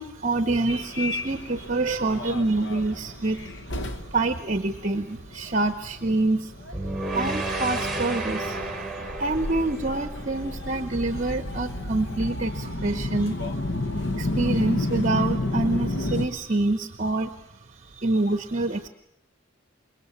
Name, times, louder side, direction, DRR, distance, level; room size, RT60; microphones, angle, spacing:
voice 1, 0.0-6.5 7.1-13.8 14.2-17.4 17.7-18.9, right 2 dB, 40° right, 10 dB, 0.9 m, -27 dB
Subway metro underground, 0.7-16.3, left 2 dB, 60° left, 1.4 m, -32 dB
sound 1, 6.7-11.0, right 2 dB, ahead, 3.4 m, -31 dB
27.0 x 21.5 x 7.2 m, 0.77 s
head